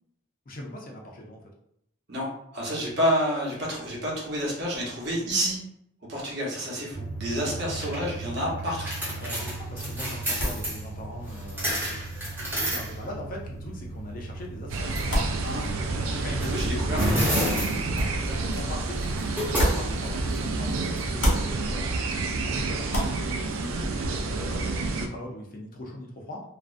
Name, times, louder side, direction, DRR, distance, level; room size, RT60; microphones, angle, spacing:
voice 1, 0.5-1.4 7.5-7.9 9.2-12.0 12.7-14.9 16.1-17.1 18.2-19.0 19.5-22.1 22.4-22.9 24.3-26.4, left 1 dB, 40° left, -1 dB, 0.4 m, -40 dB
voice 2, 2.1-5.6 6.1-9.0 15.4-15.7 16.4-17.2 23.6-23.8, equal, 50° right, -4 dB, 0.8 m, -29 dB
sound 1, 6.9-21.6, right 1 dB, 10° right, 0.6 m, -32 dB
sound 2, 9.5-20.7 21.0-24.4, equal, 80° left, 1.0 m, -34 dB
sound 3, 14.7-25.1, right 3 dB, 70° right, 0.3 m, -29 dB
2.5 x 2.0 x 2.5 m, 0.75 s
head